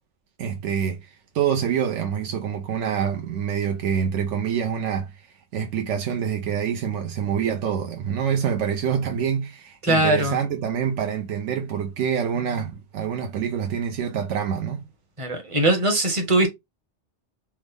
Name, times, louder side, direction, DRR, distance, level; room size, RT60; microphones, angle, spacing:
voice 1, 0.4-5.2 5.5-14.9, right 8 dB, 90° right, 0.9 m, -26 dB
voice 2, 9.8-10.4 15.2-16.5, right 1 dB, 30° right, 0.8 m, -20 dB
3.5 x 2.0 x 3.3 m
omnidirectional pair, 1.2 m